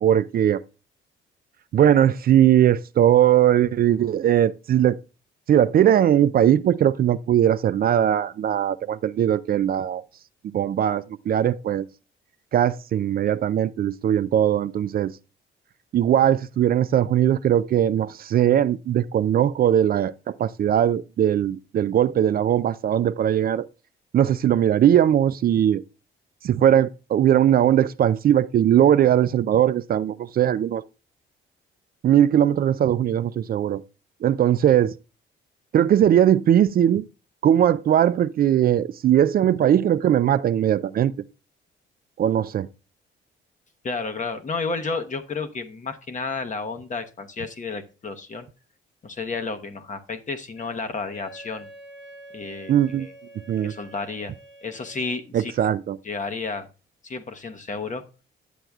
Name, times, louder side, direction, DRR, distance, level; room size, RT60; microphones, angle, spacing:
voice 1, 0.0-0.6 1.7-5.0 5.5-10.0 10.5-11.9 12.5-15.1 15.9-23.7 24.1-25.8 26.4-30.8 32.0-33.8 34.2-34.9 35.7-37.0 37.4-41.1 42.2-42.7 52.7-53.1 53.5-53.7 55.3-56.0, right 10 dB, 50° right, 0.4 m, -19 dB
voice 2, 43.8-48.5 49.0-51.7 52.3-53.1 53.6-54.3 54.6-55.5 56.0-56.7 57.0-58.0, left 4 dB, 40° left, 1.0 m, -31 dB
Wind instrument woodwind instrument, 50.5-55.2, right 1 dB, 75° left, 4.9 m, -46 dB
10.0 x 7.7 x 2.3 m
cardioid pair, 90°, 20 cm